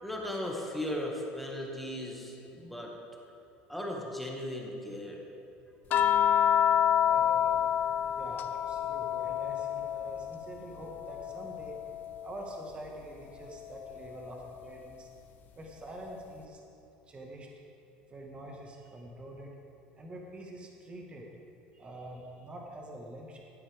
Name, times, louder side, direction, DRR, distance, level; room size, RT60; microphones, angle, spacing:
voice 1, 0.0-2.9 3.7-5.2, left 1 dB, ahead, -1 dB, 1.9 m, -37 dB
sound 1, 5.9-10.4 10.7-12.4 13.9-14.1, left 10 dB, 50° left, 0.6 m, -28 dB
voice 2, 6.4-7.6 8.0-11.9 12.2-15.1 15.6-16.7 17.1-17.5 18.1-19.6 20.0-21.3 21.7-23.4, right 1 dB, 25° right, 0 dB, 1.7 m, -45 dB
13.5 x 9.1 x 3.6 m, 2.8 s
supercardioid pair, 100°, 4 cm